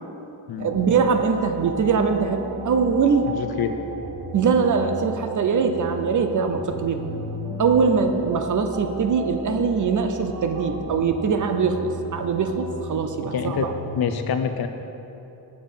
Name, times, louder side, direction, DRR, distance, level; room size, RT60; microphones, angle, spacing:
voice 1, 0.6-3.3 4.3-7.1 7.6-13.7, right 5 dB, 40° right, 7 dB, 0.6 m, -22 dB
sound 1, 0.6-14.0, right 1 dB, 70° right, 1.9 m, -36 dB
voice 2, 3.3-3.7 13.3-13.7 14.0-14.7, left 8 dB, 55° left, 7 dB, 0.6 m, -26 dB
7.3 x 7.0 x 5.6 m, 2.9 s
cardioid pair, 125°, 45 cm